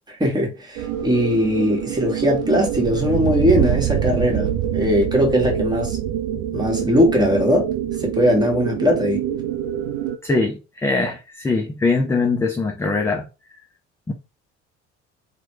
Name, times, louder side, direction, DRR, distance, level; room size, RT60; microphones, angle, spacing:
voice 1, 0.1-6.0 6.5-7.7 8.0-9.2, equal, 10° right, 1.3 m, -20 dB
sound 1, 0.8-10.2, right 10 dB, 55° right, 0.5 m, -25 dB
voice 2, 10.2-13.3 14.1-14.2, left 3 dB, 10° left, 0.4 m, -22 dB
3.0 x 2.2 x 3.0 m
figure-of-eight pair, 55°, 35 cm